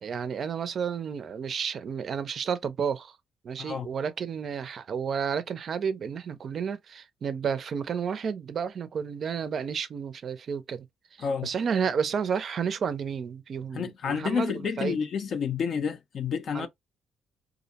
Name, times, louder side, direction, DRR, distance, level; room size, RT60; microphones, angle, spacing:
voice 1, 0.0-3.2 3.4-10.9 11.2-15.0 16.5-16.7, right 6 dB, 55° right, 0.4 m, -31 dB
voice 2, 13.7-16.7, left 6 dB, 60° left, 0.4 m, -29 dB
2.4 x 2.0 x 2.7 m
cardioid pair, 90°, 0 cm